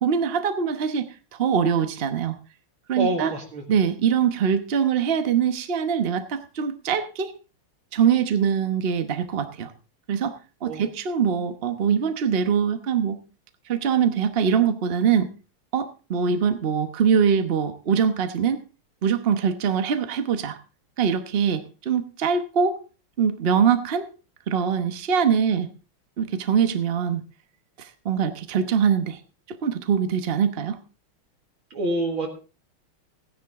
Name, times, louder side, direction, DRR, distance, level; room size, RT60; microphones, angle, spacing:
voice 1, 0.0-1.1 1.4-2.4 2.9-3.3 3.7-7.3 7.9-9.7 10.1-10.3 10.6-13.2 13.7-15.3 15.7-18.6 19.0-20.6 21.0-22.8 23.2-24.1 24.5-25.7 26.2-27.2 27.8-29.2 29.5-30.8, right 7 dB, 40° right, 9 dB, 0.9 m, -23 dB
voice 2, 3.0-3.6 10.6-10.8 31.7-32.3, right 2 dB, 75° right, 1 dB, 2.5 m, -26 dB
16.0 x 10.0 x 3.6 m, 0.33 s
omnidirectional pair, 2.3 m